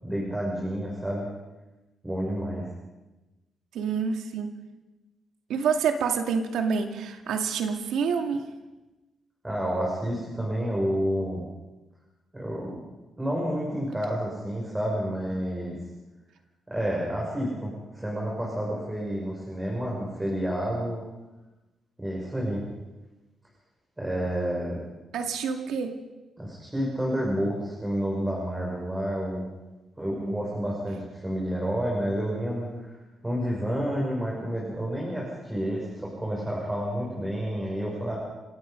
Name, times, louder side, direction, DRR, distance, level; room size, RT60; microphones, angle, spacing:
voice 1, 0.0-1.3 2.0-2.7 9.4-11.4 12.3-12.8 13.2-15.8 16.7-21.0 22.0-22.6 24.0-24.8 26.4-29.4 30.0-32.9 33.2-38.2, equal, 10° right, -3 dB, 6.4 m, -29 dB
voice 2, 3.7-4.6 5.5-8.4 25.1-26.0, right 6 dB, 90° right, 5 dB, 2.3 m, -27 dB
29.5 x 17.0 x 5.3 m, 1.1 s
cardioid pair, 95°, 0 cm